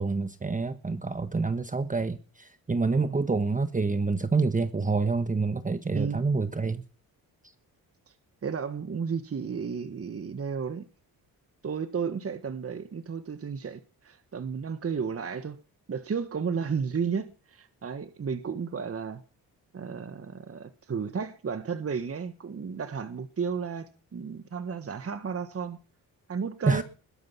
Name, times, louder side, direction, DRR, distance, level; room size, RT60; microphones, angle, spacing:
voice 1, 0.0-6.8 26.6-26.8, right 4 dB, 20° right, 1.3 m, -27 dB
voice 2, 2.9-3.2 5.9-6.2 8.4-10.9 11.6-15.6 15.9-19.2 19.7-25.8 26.3-26.8, right 6 dB, 40° right, 1.5 m, -33 dB
21.0 x 10.5 x 5.8 m
cardioid pair, 75°, 37 cm